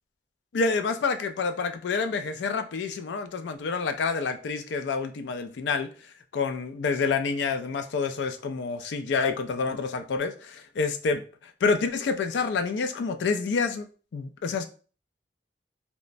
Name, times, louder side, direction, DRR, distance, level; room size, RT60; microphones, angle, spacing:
voice 1, 0.5-5.9 6.3-11.2 11.6-13.9 14.1-14.6, left 4 dB, 85° left, 0.4 m, -28 dB
3.2 x 2.0 x 2.5 m
head